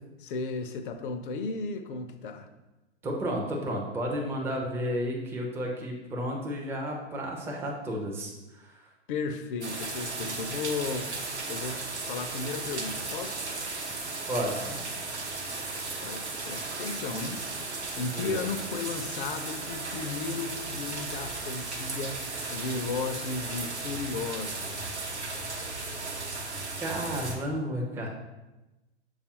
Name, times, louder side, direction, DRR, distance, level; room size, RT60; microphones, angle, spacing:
voice 1, 0.2-2.5 9.1-11.1 11.5-11.8 12.1-13.6 16.0-17.4 18.0-25.1, left 4 dB, 50° left, 8 dB, 0.5 m, -35 dB
voice 2, 3.0-8.8 14.3-14.8 18.1-18.4 26.8-28.1, equal, 5° right, -1 dB, 0.4 m, -32 dB
sound 1, 9.6-27.4, right 3 dB, 85° right, 0.8 m, -35 dB
6.6 x 2.4 x 2.8 m, 1.1 s
figure-of-eight pair, 100°, 33 cm